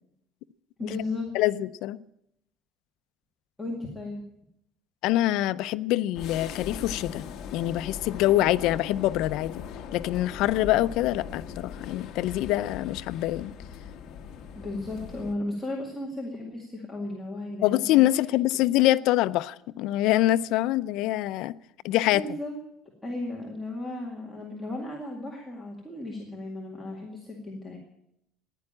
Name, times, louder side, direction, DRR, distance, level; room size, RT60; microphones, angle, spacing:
voice 1, 0.8-1.3 3.6-4.2 14.5-18.0 22.1-22.5 23.0-27.8, left 2 dB, 5° left, 2.1 m, -35 dB
voice 2, 1.3-2.0 5.0-7.3 7.5-9.6 9.9-13.5 17.6-21.6 21.8-22.2, left 15 dB, 65° left, 0.5 m, -25 dB
sound 1, 6.1-15.3, left 7 dB, 45° left, 1.4 m, -40 dB
15.5 x 10.5 x 8.8 m
cardioid pair, 160°, 0 cm